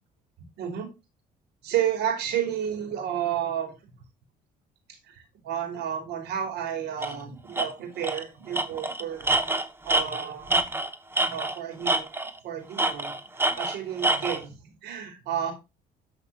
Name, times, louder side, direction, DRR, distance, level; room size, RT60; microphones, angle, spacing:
voice 1, 1.6-3.7 4.9-9.3 9.8-10.6 11.3-12.1 12.4-15.5, right 9 dB, 80° right, 5 dB, 5.0 m, -31 dB
Tools, 7.0-7.1 7.5-7.7 8.0-8.2 8.5-11.6 11.9-12.4 12.8-14.4, right 2 dB, 15° right, 1.3 m, -26 dB
13.0 x 6.0 x 4.5 m, 0.26 s
cardioid pair, 110°, 17 cm